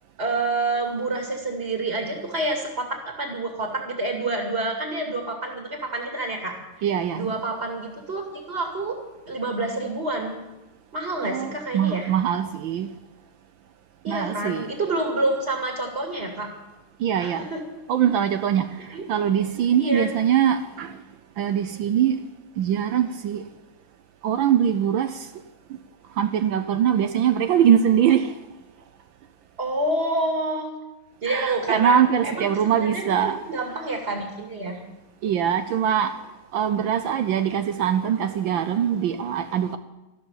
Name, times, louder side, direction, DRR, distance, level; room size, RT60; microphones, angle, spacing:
voice 1, 0.2-6.6 7.1-9.0 9.2-10.4 10.9-12.1 14.0-16.5 17.2-17.6 18.9-19.0 19.8-20.1 29.6-30.7 31.2-34.8, right 2 dB, 30° right, 2.6 m, -28 dB
voice 2, 6.8-7.3 11.2-12.9 14.1-14.7 17.0-17.5 17.9-18.7 19.1-21.0 21.4-22.1 22.6-23.4 24.2-25.3 26.2-28.4 31.2-33.4 35.2-36.1 36.5-39.8, right 9 dB, 70° right, 1.4 m, -22 dB
13.5 x 12.5 x 7.2 m
omnidirectional pair, 2.3 m